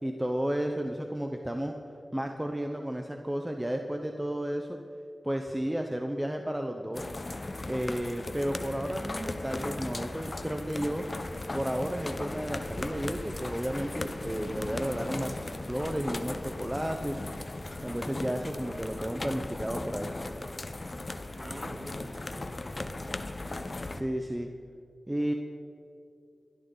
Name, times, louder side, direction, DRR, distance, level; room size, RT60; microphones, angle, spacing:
voice 1, 0.0-1.7 2.1-4.8 5.2-7.1 7.7-11.0 11.5-17.2 17.8-20.1 23.9-24.5 25.1-25.3, right 1 dB, 10° right, 4 dB, 1.0 m, -32 dB
sound 1, 6.9-24.0, left 2 dB, 40° left, 0.9 m, -37 dB
voice 2, 21.4-22.6 25.2-25.3, right 1 dB, 40° right, 0 dB, 3.3 m, -46 dB
22.5 x 13.0 x 4.1 m, 2.5 s
wide cardioid pair, 65°, 0 cm